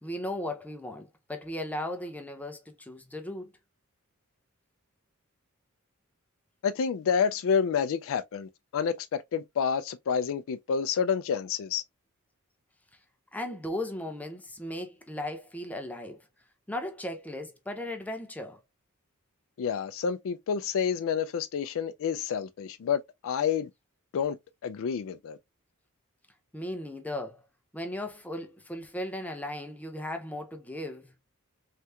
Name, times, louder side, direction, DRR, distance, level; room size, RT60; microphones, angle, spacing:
voice 1, 0.0-3.5 13.3-16.2 16.7-18.6 26.5-27.4 27.7-31.1, left 1 dB, 5° left, 0.5 m, -36 dB
voice 2, 6.6-11.8 19.6-23.7 24.1-24.4 24.6-25.4, left 7 dB, 60° left, 0.3 m, -29 dB
3.3 x 2.8 x 2.3 m
head